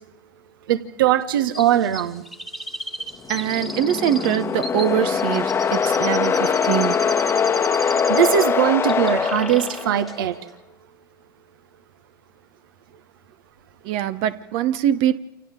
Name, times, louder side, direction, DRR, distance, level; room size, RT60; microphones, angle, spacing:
voice 1, 0.7-2.2 7.8-10.4, right 11 dB, 70° right, 1.7 m, -20 dB
Chirp tweet, 1.5-8.6 8.9-9.8 10.1-10.2, equal, ahead, 1.7 m, -35 dB
sound 1, 3.2-10.3, left 6 dB, 20° left, 1.3 m, -22 dB
voice 2, 3.3-7.1 13.8-15.2, right 11 dB, 45° right, 1.0 m, -23 dB
29.0 x 26.5 x 3.8 m
hypercardioid pair, 105°, 12 cm